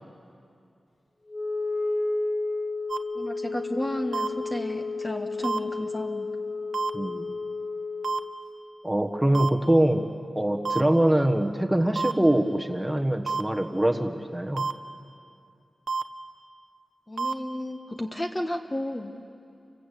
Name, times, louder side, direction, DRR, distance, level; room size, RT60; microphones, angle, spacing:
Wind instrument woodwind instrument, 1.3-8.4, left 3 dB, 50° left, 2.1 m, -32 dB
sound 1, 2.9-3.0 4.1-4.3 5.4-5.6 6.7-6.9 8.0-8.2 9.3-9.5 10.6-10.8 12.0-12.1 13.3-13.4 14.6-14.7 15.9-16.0 17.2-17.3, right 4 dB, 80° right, 1.0 m, -27 dB
voice 1, 3.1-6.3 17.1-19.1, left 1 dB, 20° left, 4 dB, 1.3 m, -32 dB
voice 2, 6.9-7.4 8.8-10.1 10.3-14.7, right 1 dB, 5° right, 4 dB, 1.3 m, -23 dB
29.5 x 22.5 x 8.4 m, 2.5 s
wide cardioid pair, 130°, 0 cm